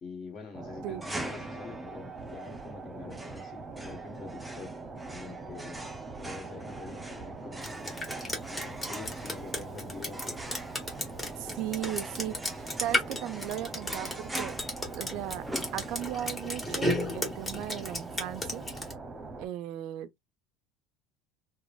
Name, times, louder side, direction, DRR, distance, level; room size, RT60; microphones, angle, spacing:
voice 1, 0.0-4.7 5.1-5.9 6.2-8.0 8.5-10.4, left 4 dB, 40° left, 1.3 m, -45 dB
sound 1, 0.5-19.5, right 3 dB, 25° right, 0.9 m, -42 dB
sound 2, 1.0-16.4, right 1 dB, 5° right, 0.6 m, -44 dB
Drip, 7.6-18.9, left 1 dB, 20° left, 1.2 m, -34 dB
voice 2, 11.4-14.6 14.9-15.5 15.7-18.7 19.4-20.2, right 12 dB, 65° right, 0.3 m, -37 dB
2.9 x 2.2 x 2.5 m
hypercardioid pair, 85°, 0 cm